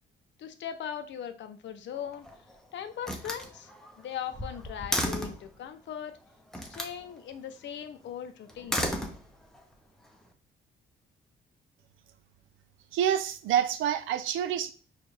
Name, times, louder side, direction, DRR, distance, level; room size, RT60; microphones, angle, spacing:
voice 1, 0.4-2.3 2.7-3.7 4.0-6.2 6.6-8.8, left 9 dB, 65° left, 0.6 m, -39 dB
Slam, 1.9-2.5 3.0-5.5 6.5-7.0 8.5-9.6, equal, ahead, 0.7 m, -34 dB
voice 2, 12.9-14.7, right 10 dB, 85° right, 0.4 m, -27 dB
4.4 x 2.4 x 3.3 m
cardioid pair, 90°, 20 cm